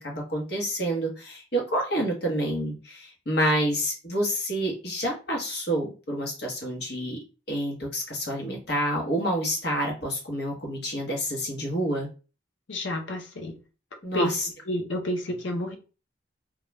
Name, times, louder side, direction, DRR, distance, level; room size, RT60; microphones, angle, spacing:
voice 1, 0.0-7.2 7.5-12.1 14.0-14.3, right 1 dB, 55° left, 0 dB, 1.0 m, -28 dB
voice 2, 12.7-13.6 14.1-14.4 14.7-15.8, left 1 dB, 75° left, 4 dB, 0.6 m, -29 dB
2.3 x 2.2 x 3.0 m, 0.34 s
head